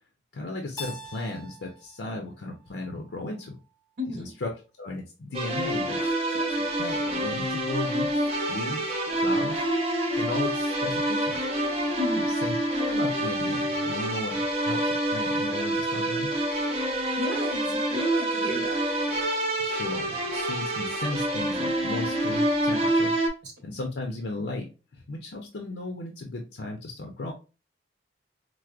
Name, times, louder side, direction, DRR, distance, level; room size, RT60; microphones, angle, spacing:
voice 1, 0.3-3.6 4.1-4.5 4.8-9.6 10.2-11.4 12.4-16.3 19.6-23.2 23.6-27.3, left 2 dB, 70° left, 2 dB, 0.5 m, -35 dB
Keyboard (musical), 0.8-3.6, left 2 dB, 20° left, 0.4 m, -44 dB
voice 2, 4.0-4.3 12.0-12.3 17.2-18.8 23.4-23.5, equal, 75° right, 0 dB, 0.9 m, -32 dB
sound 1, 5.3-23.3, right 1 dB, 30° right, 0.5 m, -27 dB
4.5 x 2.0 x 2.4 m, 0.31 s
head